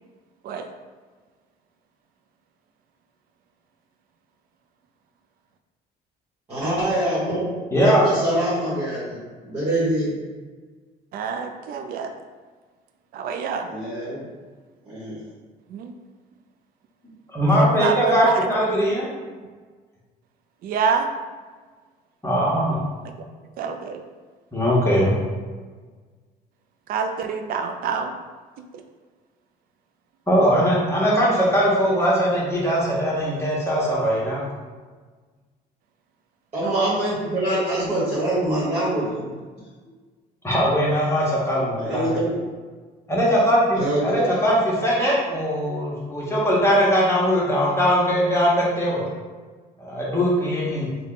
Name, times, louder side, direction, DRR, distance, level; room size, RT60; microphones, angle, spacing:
voice 1, 6.5-7.5 7.7-10.2 13.7-14.2 14.9-15.2 36.5-39.4 41.8-42.4 43.7-44.4, right 1 dB, 40° right, -9 dB, 1.2 m, -25 dB
voice 2, 7.7-8.0 17.3-19.1 22.2-22.8 24.5-25.1 30.3-34.4 40.4-42.1 43.1-49.0 49.8-50.9, equal, 15° left, -6 dB, 1.1 m, -20 dB
voice 3, 11.1-12.1 13.1-13.7 15.7-15.9 17.5-18.5 20.6-21.1 23.6-24.0 26.9-28.1 36.6-36.9, right 6 dB, 60° right, 6 dB, 0.4 m, -26 dB
3.5 x 2.2 x 3.8 m, 1.4 s
cardioid pair, 110°, 17 cm